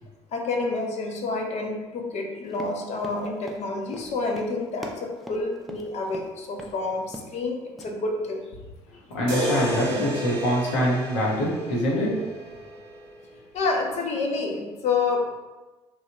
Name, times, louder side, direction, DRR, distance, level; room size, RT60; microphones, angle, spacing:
voice 1, 0.3-8.4 13.5-15.4, left 3 dB, 45° left, 2 dB, 0.6 m, -28 dB
Run, 2.5-6.3 6.6-6.8 7.0-7.4 7.8-7.9, equal, ahead, 0.4 m, -41 dB
voice 2, 9.1-12.2, equal, 75° left, -5 dB, 0.9 m, -24 dB
sound 1, 9.3-13.3, equal, 70° right, 0.8 m, -32 dB
3.0 x 2.4 x 2.8 m, 1.2 s
figure-of-eight pair, 55°, 15 cm